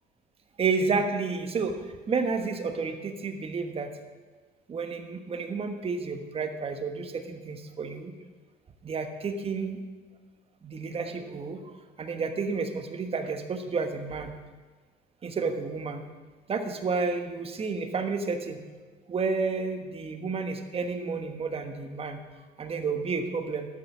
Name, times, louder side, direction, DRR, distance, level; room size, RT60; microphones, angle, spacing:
voice 1, 0.6-3.9 4.7-8.1 8.8-9.8 10.6-14.3 15.2-16.0 16.5-18.6 19.1-22.2 22.6-23.7, right 4 dB, 35° right, 6 dB, 1.2 m, -31 dB
11.5 x 6.9 x 6.1 m, 1.4 s
cardioid pair, 110°, 17 cm